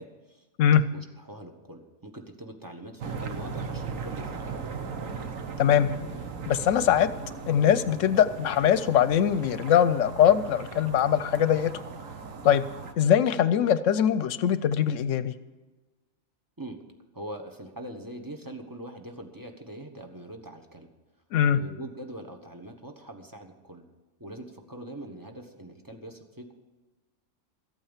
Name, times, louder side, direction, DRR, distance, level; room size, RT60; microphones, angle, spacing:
voice 1, 0.0-0.4 0.9-4.8 16.6-16.8 17.1-20.9 21.5-23.8 24.2-26.5, right 1 dB, 15° right, 3 dB, 1.2 m, -42 dB
sound 1, 3.0-12.9, right 5 dB, 85° right, 1.5 m, -38 dB
voice 2, 5.6-5.9 6.5-7.1 7.5-11.7 12.4-12.6 13.0-15.3 21.3-21.6, left 9 dB, 75° left, 14 dB, 0.9 m, -22 dB
13.5 x 8.8 x 7.2 m, 1.2 s
omnidirectional pair, 1.3 m